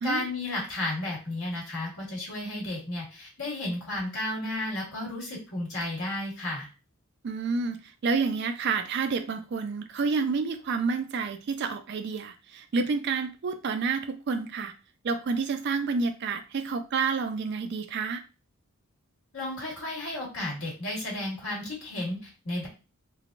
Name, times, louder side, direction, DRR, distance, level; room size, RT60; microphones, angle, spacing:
voice 1, 0.0-6.7 19.3-22.7, left 1 dB, 75° left, -4 dB, 1.5 m, -33 dB
voice 2, 7.2-14.7 15.0-18.2, right 4 dB, 50° right, 7 dB, 0.3 m, -29 dB
3.3 x 2.1 x 2.4 m, 0.31 s
head